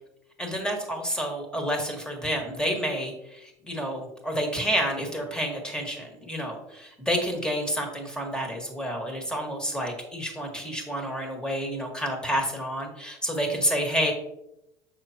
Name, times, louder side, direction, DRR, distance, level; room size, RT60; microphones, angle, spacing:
voice 1, 0.4-14.1, equal, 10° left, 2 dB, 1.8 m, -29 dB
6.4 x 5.8 x 2.9 m, 0.84 s
supercardioid pair, 95°, 9 cm